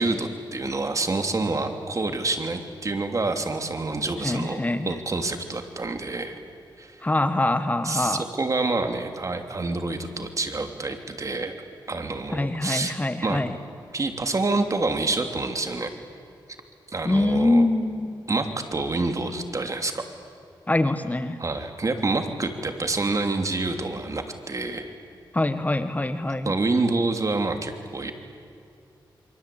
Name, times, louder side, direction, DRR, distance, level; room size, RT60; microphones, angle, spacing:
voice 1, 0.0-6.4 6.8-6.9 7.8-11.5 11.9-13.0 13.2-13.4 13.9-15.9 16.9-17.7 18.3-20.0 21.4-24.9 26.4-28.1, right 3 dB, 40° right, 6 dB, 3.1 m, -27 dB
voice 2, 4.2-4.9 7.0-8.2 12.3-13.5 17.0-18.2 20.7-21.4 25.3-26.6, left 2 dB, 20° left, 10 dB, 1.4 m, -24 dB
27.5 x 24.0 x 8.7 m, 2.5 s
cardioid pair, 70°, 8 cm